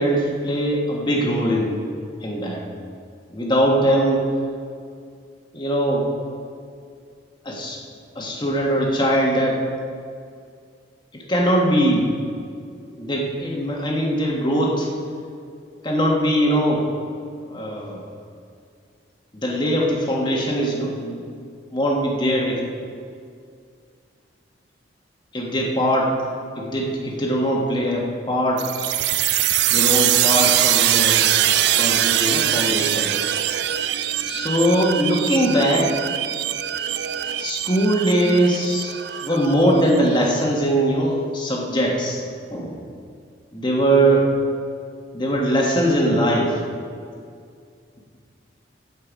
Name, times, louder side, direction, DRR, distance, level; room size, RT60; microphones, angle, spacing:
voice 1, 0.0-1.8 2.2-2.6 3.3-4.2 5.5-6.1 7.4-7.8 8.1-9.6 11.1-12.1 12.7-14.9 15.8-16.8 17.5-18.0 19.3-21.2 21.7-22.6 25.3-26.1 26.6-28.6 29.7-31.2 31.8-33.1 34.3-35.9 37.4-38.9 39.2-42.2 42.5-42.8 43.5-44.3 45.1-46.6, right 1 dB, 25° left, -1 dB, 1.5 m, -21 dB
sound 1, 28.6-40.0, right 12 dB, 65° right, 0.4 m, -22 dB
15.5 x 5.4 x 5.2 m, 2.3 s
head